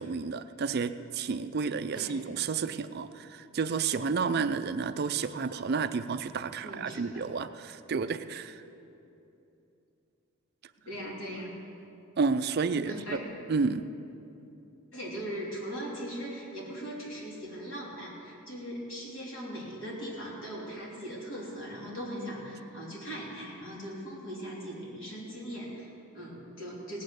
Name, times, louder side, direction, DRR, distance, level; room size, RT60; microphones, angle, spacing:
voice 1, 0.0-8.6 12.2-13.0 13.5-13.9, right 5 dB, 50° right, 11 dB, 0.4 m, -31 dB
voice 2, 6.6-7.2 10.9-11.5 12.9-13.2 14.9-27.0, equal, 65° left, -5 dB, 3.6 m, -39 dB
18.0 x 8.6 x 6.4 m, 2.8 s
head